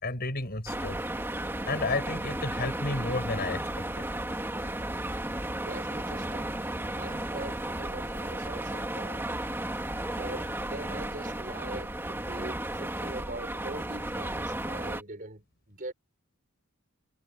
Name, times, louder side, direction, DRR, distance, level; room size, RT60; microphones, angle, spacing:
voice 1, 0.0-1.0 1.6-4.1, left 2 dB, 45° left, 5.2 m, -32 dB
sound 1, 0.7-15.0, right 1 dB, 10° right, 2.3 m, -34 dB
voice 2, 5.7-6.6 6.9-9.3 10.1-15.9, right 2 dB, 40° right, 4.8 m, -42 dB
head